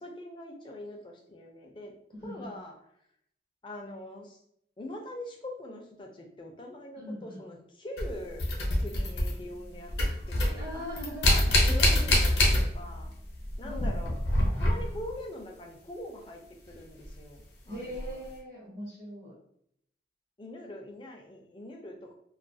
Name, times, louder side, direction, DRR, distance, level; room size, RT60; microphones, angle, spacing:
voice 1, 0.0-1.9 2.2-2.7 3.6-4.4 4.8-9.9 10.3-10.8 11.2-13.1 13.6-14.2 14.5-18.2 20.4-22.1, left 1 dB, 25° left, 1 dB, 0.4 m, -43 dB
voice 2, 2.1-2.6 7.0-7.4 10.6-11.6 13.6-14.0 17.7-19.4, equal, 50° right, -6 dB, 0.8 m, -41 dB
sound 1, 8.0-9.6 9.9-13.1 13.3-15.1 17.0-17.1 17.9-18.1, left 1 dB, 65° left, 0.7 m, -25 dB
2.3 x 2.3 x 2.6 m, 0.71 s
head